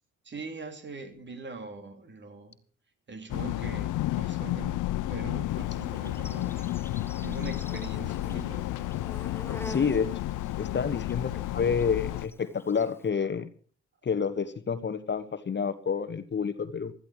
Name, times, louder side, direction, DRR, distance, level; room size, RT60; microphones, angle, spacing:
voice 1, 0.2-2.6 3.1-4.8 5.1-8.9 9.3-10.0, right 4 dB, 40° right, 2.9 m, -42 dB
sound 1, 3.3-12.3, left 15 dB, 85° left, 0.7 m, -32 dB
Insect, 5.5-13.1, left 2 dB, 10° left, 0.9 m, -47 dB
voice 2, 9.6-10.1 10.6-13.5 14.0-16.9, left 6 dB, 35° left, 1.2 m, -29 dB
15.5 x 14.0 x 4.8 m
cardioid pair, 90°, 30 cm